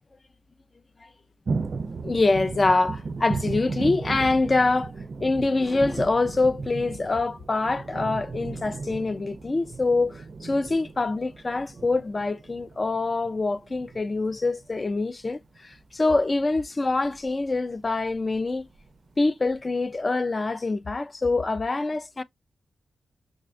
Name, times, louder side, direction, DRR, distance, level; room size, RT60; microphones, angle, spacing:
sound 1, 1.5-15.7 16.0-16.5 17.1-17.6 18.0-18.5 18.9-19.0 19.5-19.6, right 4 dB, 50° right, 0.4 m, -35 dB
voice 1, 2.0-4.9 5.2-18.7 19.2-22.2, left 3 dB, 30° left, 0.3 m, -25 dB
6.1 x 2.2 x 2.4 m
wide cardioid pair, 105°, 0 cm